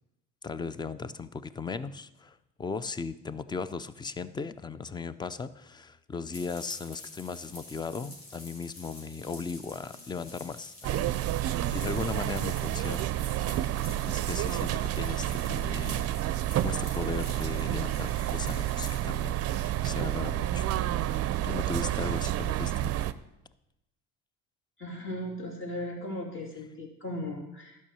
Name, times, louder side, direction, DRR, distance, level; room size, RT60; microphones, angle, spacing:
voice 1, 0.4-11.1 11.7-13.7 14.1-20.7 21.4-22.9, left 5 dB, 15° left, 15 dB, 0.4 m, -37 dB
sound 1, 6.3-19.0, left 2 dB, 75° left, 3.1 m, -48 dB
sound 2, 10.8-23.1, right 13 dB, 45° right, 0.5 m, -30 dB
voice 2, 24.8-27.8, left 1 dB, 35° left, -1 dB, 3.0 m, -37 dB
11.0 x 5.6 x 6.8 m, 0.92 s
cardioid pair, 105°, 35 cm